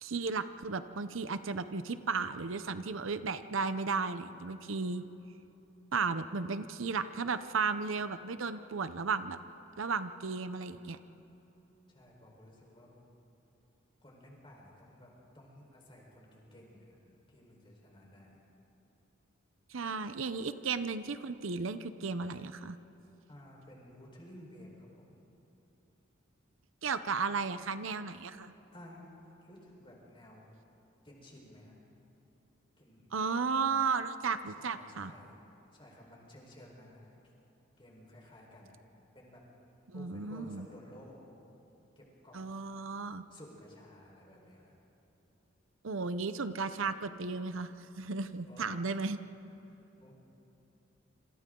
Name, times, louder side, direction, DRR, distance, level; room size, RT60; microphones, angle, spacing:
voice 1, 0.0-5.0 5.9-9.4 9.8-11.0 19.7-22.8 26.8-28.5 33.1-35.1 39.9-40.7 42.3-43.2 45.8-47.7 48.0-49.2, right 4 dB, 80° right, 11 dB, 0.8 m, -34 dB
voice 2, 11.9-13.0 14.0-15.1 15.3-17.0 17.3-18.4 23.3-25.2 28.7-29.1 29.4-30.4 31.0-31.8 32.8-33.1 34.5-35.3 35.7-37.2 37.8-38.8 39.1-39.4 39.9-41.2 42.0-42.8 43.3-44.8 48.5-49.0 49.6-50.1, left 1 dB, 25° left, -2 dB, 4.5 m, -54 dB
27.5 x 26.5 x 3.9 m, 3.0 s
head